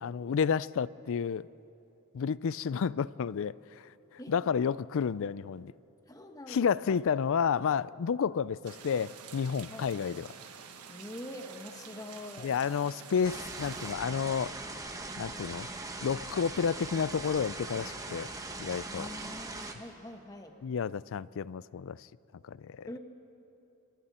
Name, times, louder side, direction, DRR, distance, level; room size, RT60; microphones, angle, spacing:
voice 1, 0.0-1.5 2.1-3.9 4.3-5.7 6.5-10.3 12.4-14.5 15.2-15.7 16.0-18.3 18.6-19.1 20.6-22.1 22.4-22.9, left 6 dB, 60° left, 20 dB, 0.4 m, -31 dB
voice 2, 6.1-7.0 9.7-9.9 10.9-12.5 18.9-20.6 22.9-23.0, left 1 dB, 15° left, 4 dB, 1.5 m, -44 dB
sound 1, 8.6-13.9, right 7 dB, 85° right, 1.2 m, -49 dB
sound 2, 13.2-19.7, right 2 dB, 15° right, 1.3 m, -40 dB
27.5 x 25.0 x 4.3 m, 3.0 s
head